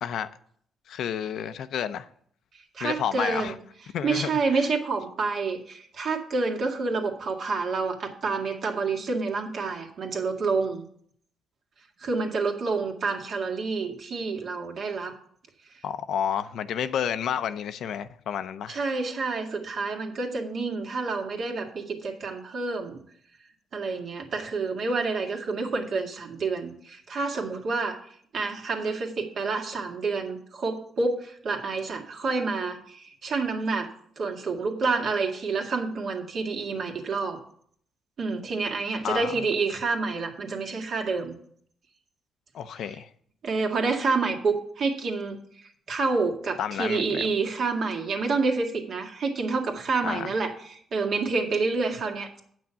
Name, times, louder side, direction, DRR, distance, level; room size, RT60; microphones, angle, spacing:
voice 1, 0.9-2.1 2.8-3.5 3.9-4.7 15.8-18.8 39.0-39.3 42.5-43.1 46.6-47.3 50.0-50.3, left 8 dB, 75° left, 0.6 m, -30 dB
voice 2, 2.7-3.6 4.0-10.8 12.0-15.1 18.7-23.0 23.7-28.0 28.3-33.9 34.2-37.4 38.2-41.4 43.4-45.4 45.9-52.4, right 4 dB, 55° right, 2.0 m, -28 dB
8.6 x 6.1 x 6.9 m
cardioid pair, 90°, 0 cm